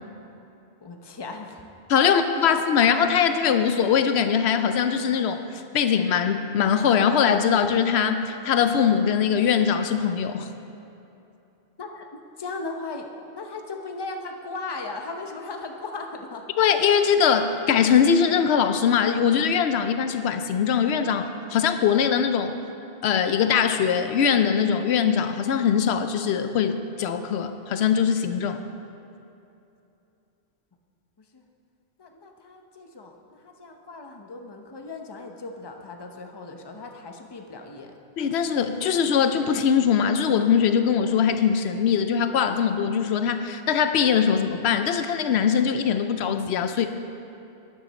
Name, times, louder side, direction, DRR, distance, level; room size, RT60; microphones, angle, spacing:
voice 1, 0.8-1.6 2.0-2.2 11.8-16.5 31.2-31.4 32.0-37.9, left 3 dB, 25° left, 4 dB, 0.8 m, -37 dB
voice 2, 1.9-10.5 16.6-22.5 23.0-28.6 38.2-46.9, left 7 dB, 80° left, 9 dB, 0.8 m, -22 dB
12.0 x 9.8 x 4.1 m, 2.8 s
omnidirectional pair, 1.1 m